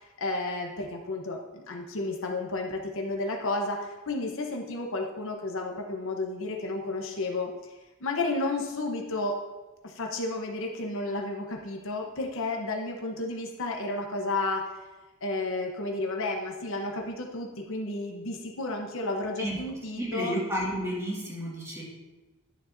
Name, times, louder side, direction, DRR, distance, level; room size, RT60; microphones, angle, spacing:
voice 1, 0.0-7.5 8.0-9.4 9.8-14.7 15.2-20.4, left 2 dB, 60° left, 2 dB, 1.0 m, -32 dB
voice 2, 20.0-21.8, equal, 15° right, -5 dB, 2.0 m, -31 dB
11.5 x 7.0 x 2.6 m, 1.1 s
head